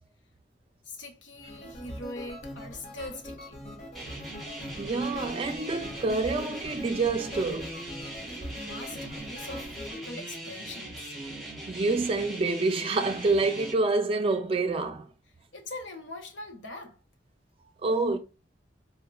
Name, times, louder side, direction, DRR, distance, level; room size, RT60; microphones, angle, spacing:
voice 1, 0.8-3.6 8.2-11.1 15.5-17.0, left 2 dB, 80° left, 0.8 m, -42 dB
sound 1, 1.4-10.0, left 1 dB, 40° left, 1.0 m, -42 dB
sound 2, 3.9-13.7, right 1 dB, ahead, 1.0 m, -40 dB
voice 2, 4.8-7.7 11.7-15.1 17.8-18.2, right 3 dB, 30° right, 0.4 m, -27 dB
4.1 x 2.1 x 2.2 m
head